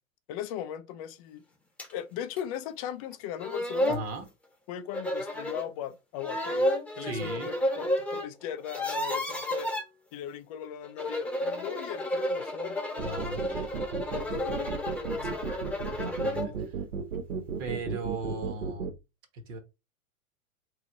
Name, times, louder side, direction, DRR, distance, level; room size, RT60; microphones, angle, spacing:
voice 1, 0.3-1.4 1.9-4.0 4.7-9.7 10.1-12.8 14.1-15.6, left 10 dB, 30° left, 0.4 m, -38 dB
sound 1, 1.8-1.9 2.4-2.5 3.1-3.2 3.4-4.1 4.9-5.7 6.2-8.3 8.5-9.8 10.8-16.5, left 1 dB, 5° left, 0.9 m, -31 dB
voice 2, 3.9-4.3 7.0-7.5 13.0-13.7 15.9-16.5 17.6-18.9 19.3-19.6, right 2 dB, 40° right, 1.1 m, -37 dB
sound 2, 13.0-18.9, right 6 dB, 70° right, 0.8 m, -34 dB
3.1 x 2.4 x 3.8 m
figure-of-eight pair, 105°, 41 cm